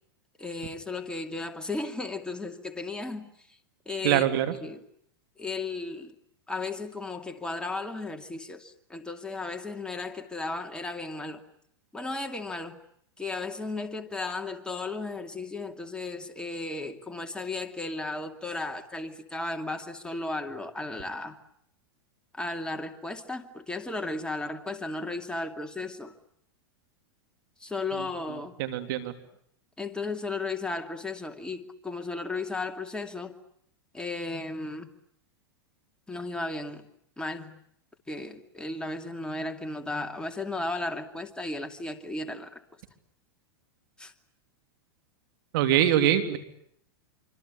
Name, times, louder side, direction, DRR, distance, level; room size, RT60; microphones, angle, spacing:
voice 1, 0.4-3.6 3.9-4.2 4.6-4.8 5.4-6.1 6.5-11.4 11.9-12.8 13.2-21.4 22.3-26.1 27.6-28.5 29.8-33.4 33.9-34.9 36.1-36.8 37.2-37.6 38.1-42.6 44.0-44.1, left 2 dB, 5° left, 2.6 m, -35 dB
voice 2, 4.0-4.5 28.6-29.1 45.5-46.4, right 11 dB, 65° right, 3.3 m, -23 dB
25.5 x 25.5 x 8.7 m
hypercardioid pair, 110°, 13 cm